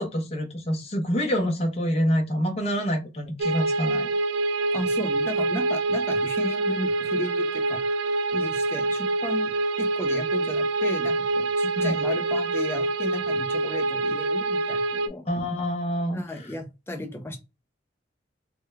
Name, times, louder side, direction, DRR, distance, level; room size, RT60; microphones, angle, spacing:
voice 1, 0.0-4.1 11.8-12.0 15.3-16.2, equal, 35° left, 1 dB, 0.8 m, -26 dB
sound 1, 3.4-15.1, right 2 dB, 80° right, 0.4 m, -26 dB
voice 2, 4.7-7.8 8.3-9.5 9.8-15.2 16.1-17.4, left 1 dB, 15° left, 3 dB, 0.5 m, -34 dB
3.4 x 2.2 x 3.1 m, 0.26 s
head